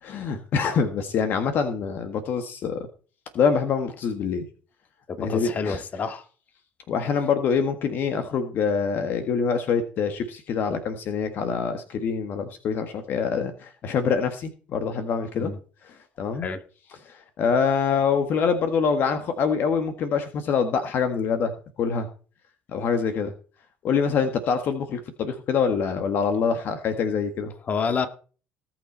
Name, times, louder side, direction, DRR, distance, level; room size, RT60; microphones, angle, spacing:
voice 1, 0.0-2.9 3.3-4.4 5.2-5.8 6.9-15.5 15.8-16.5 17.0-21.5 21.8-22.1 22.7-23.3 23.8-27.5, left 6 dB, 60° left, 7 dB, 1.6 m, -25 dB
voice 2, 5.1-6.2 15.3-15.6 16.4-16.6 27.7-28.1, left 5 dB, 40° left, 8 dB, 2.0 m, -28 dB
18.5 x 6.2 x 4.4 m, 0.38 s
supercardioid pair, 80°, 4 cm